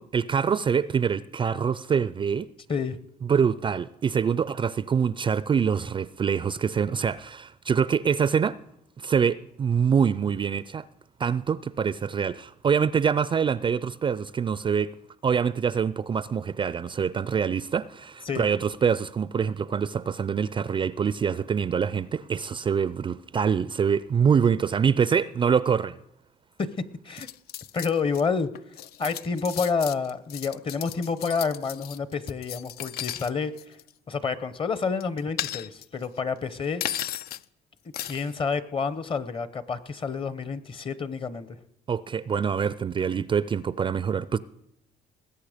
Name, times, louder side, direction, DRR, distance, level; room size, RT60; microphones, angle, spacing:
voice 1, 0.0-2.5 3.2-8.6 9.0-10.9 11.2-14.9 15.2-26.0 41.9-44.4, right 7 dB, 30° right, 0.4 m, -25 dB
sound 1, 27.2-28.2 28.5-33.3 33.6-33.9 35.0-36.0 36.8-37.4 37.9-38.3, left 12 dB, 65° left, 0.4 m, -35 dB
voice 2, 27.7-28.5 29.0-33.8 34.1-36.8 38.0-41.6, left 5 dB, 30° left, 0.9 m, -29 dB
20.0 x 8.5 x 5.1 m
cardioid pair, 110°, 17 cm